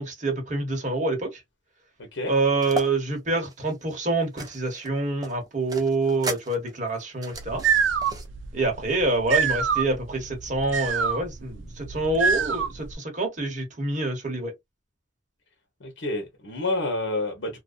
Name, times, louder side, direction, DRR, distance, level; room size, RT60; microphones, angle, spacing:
voice 1, 0.0-1.4 2.2-7.6 8.5-14.5, right 2 dB, 40° right, 1.1 m, -26 dB
voice 2, 2.0-2.3 15.8-17.6, left 2 dB, 70° left, 0.8 m, -29 dB
sound 1, 2.6-2.9 3.4-4.9 5.2-8.3, right 2 dB, 20° right, 0.5 m, -35 dB
sound 2, 7.3-12.9, right 6 dB, 70° right, 0.4 m, -26 dB
2.5 x 2.2 x 2.4 m
head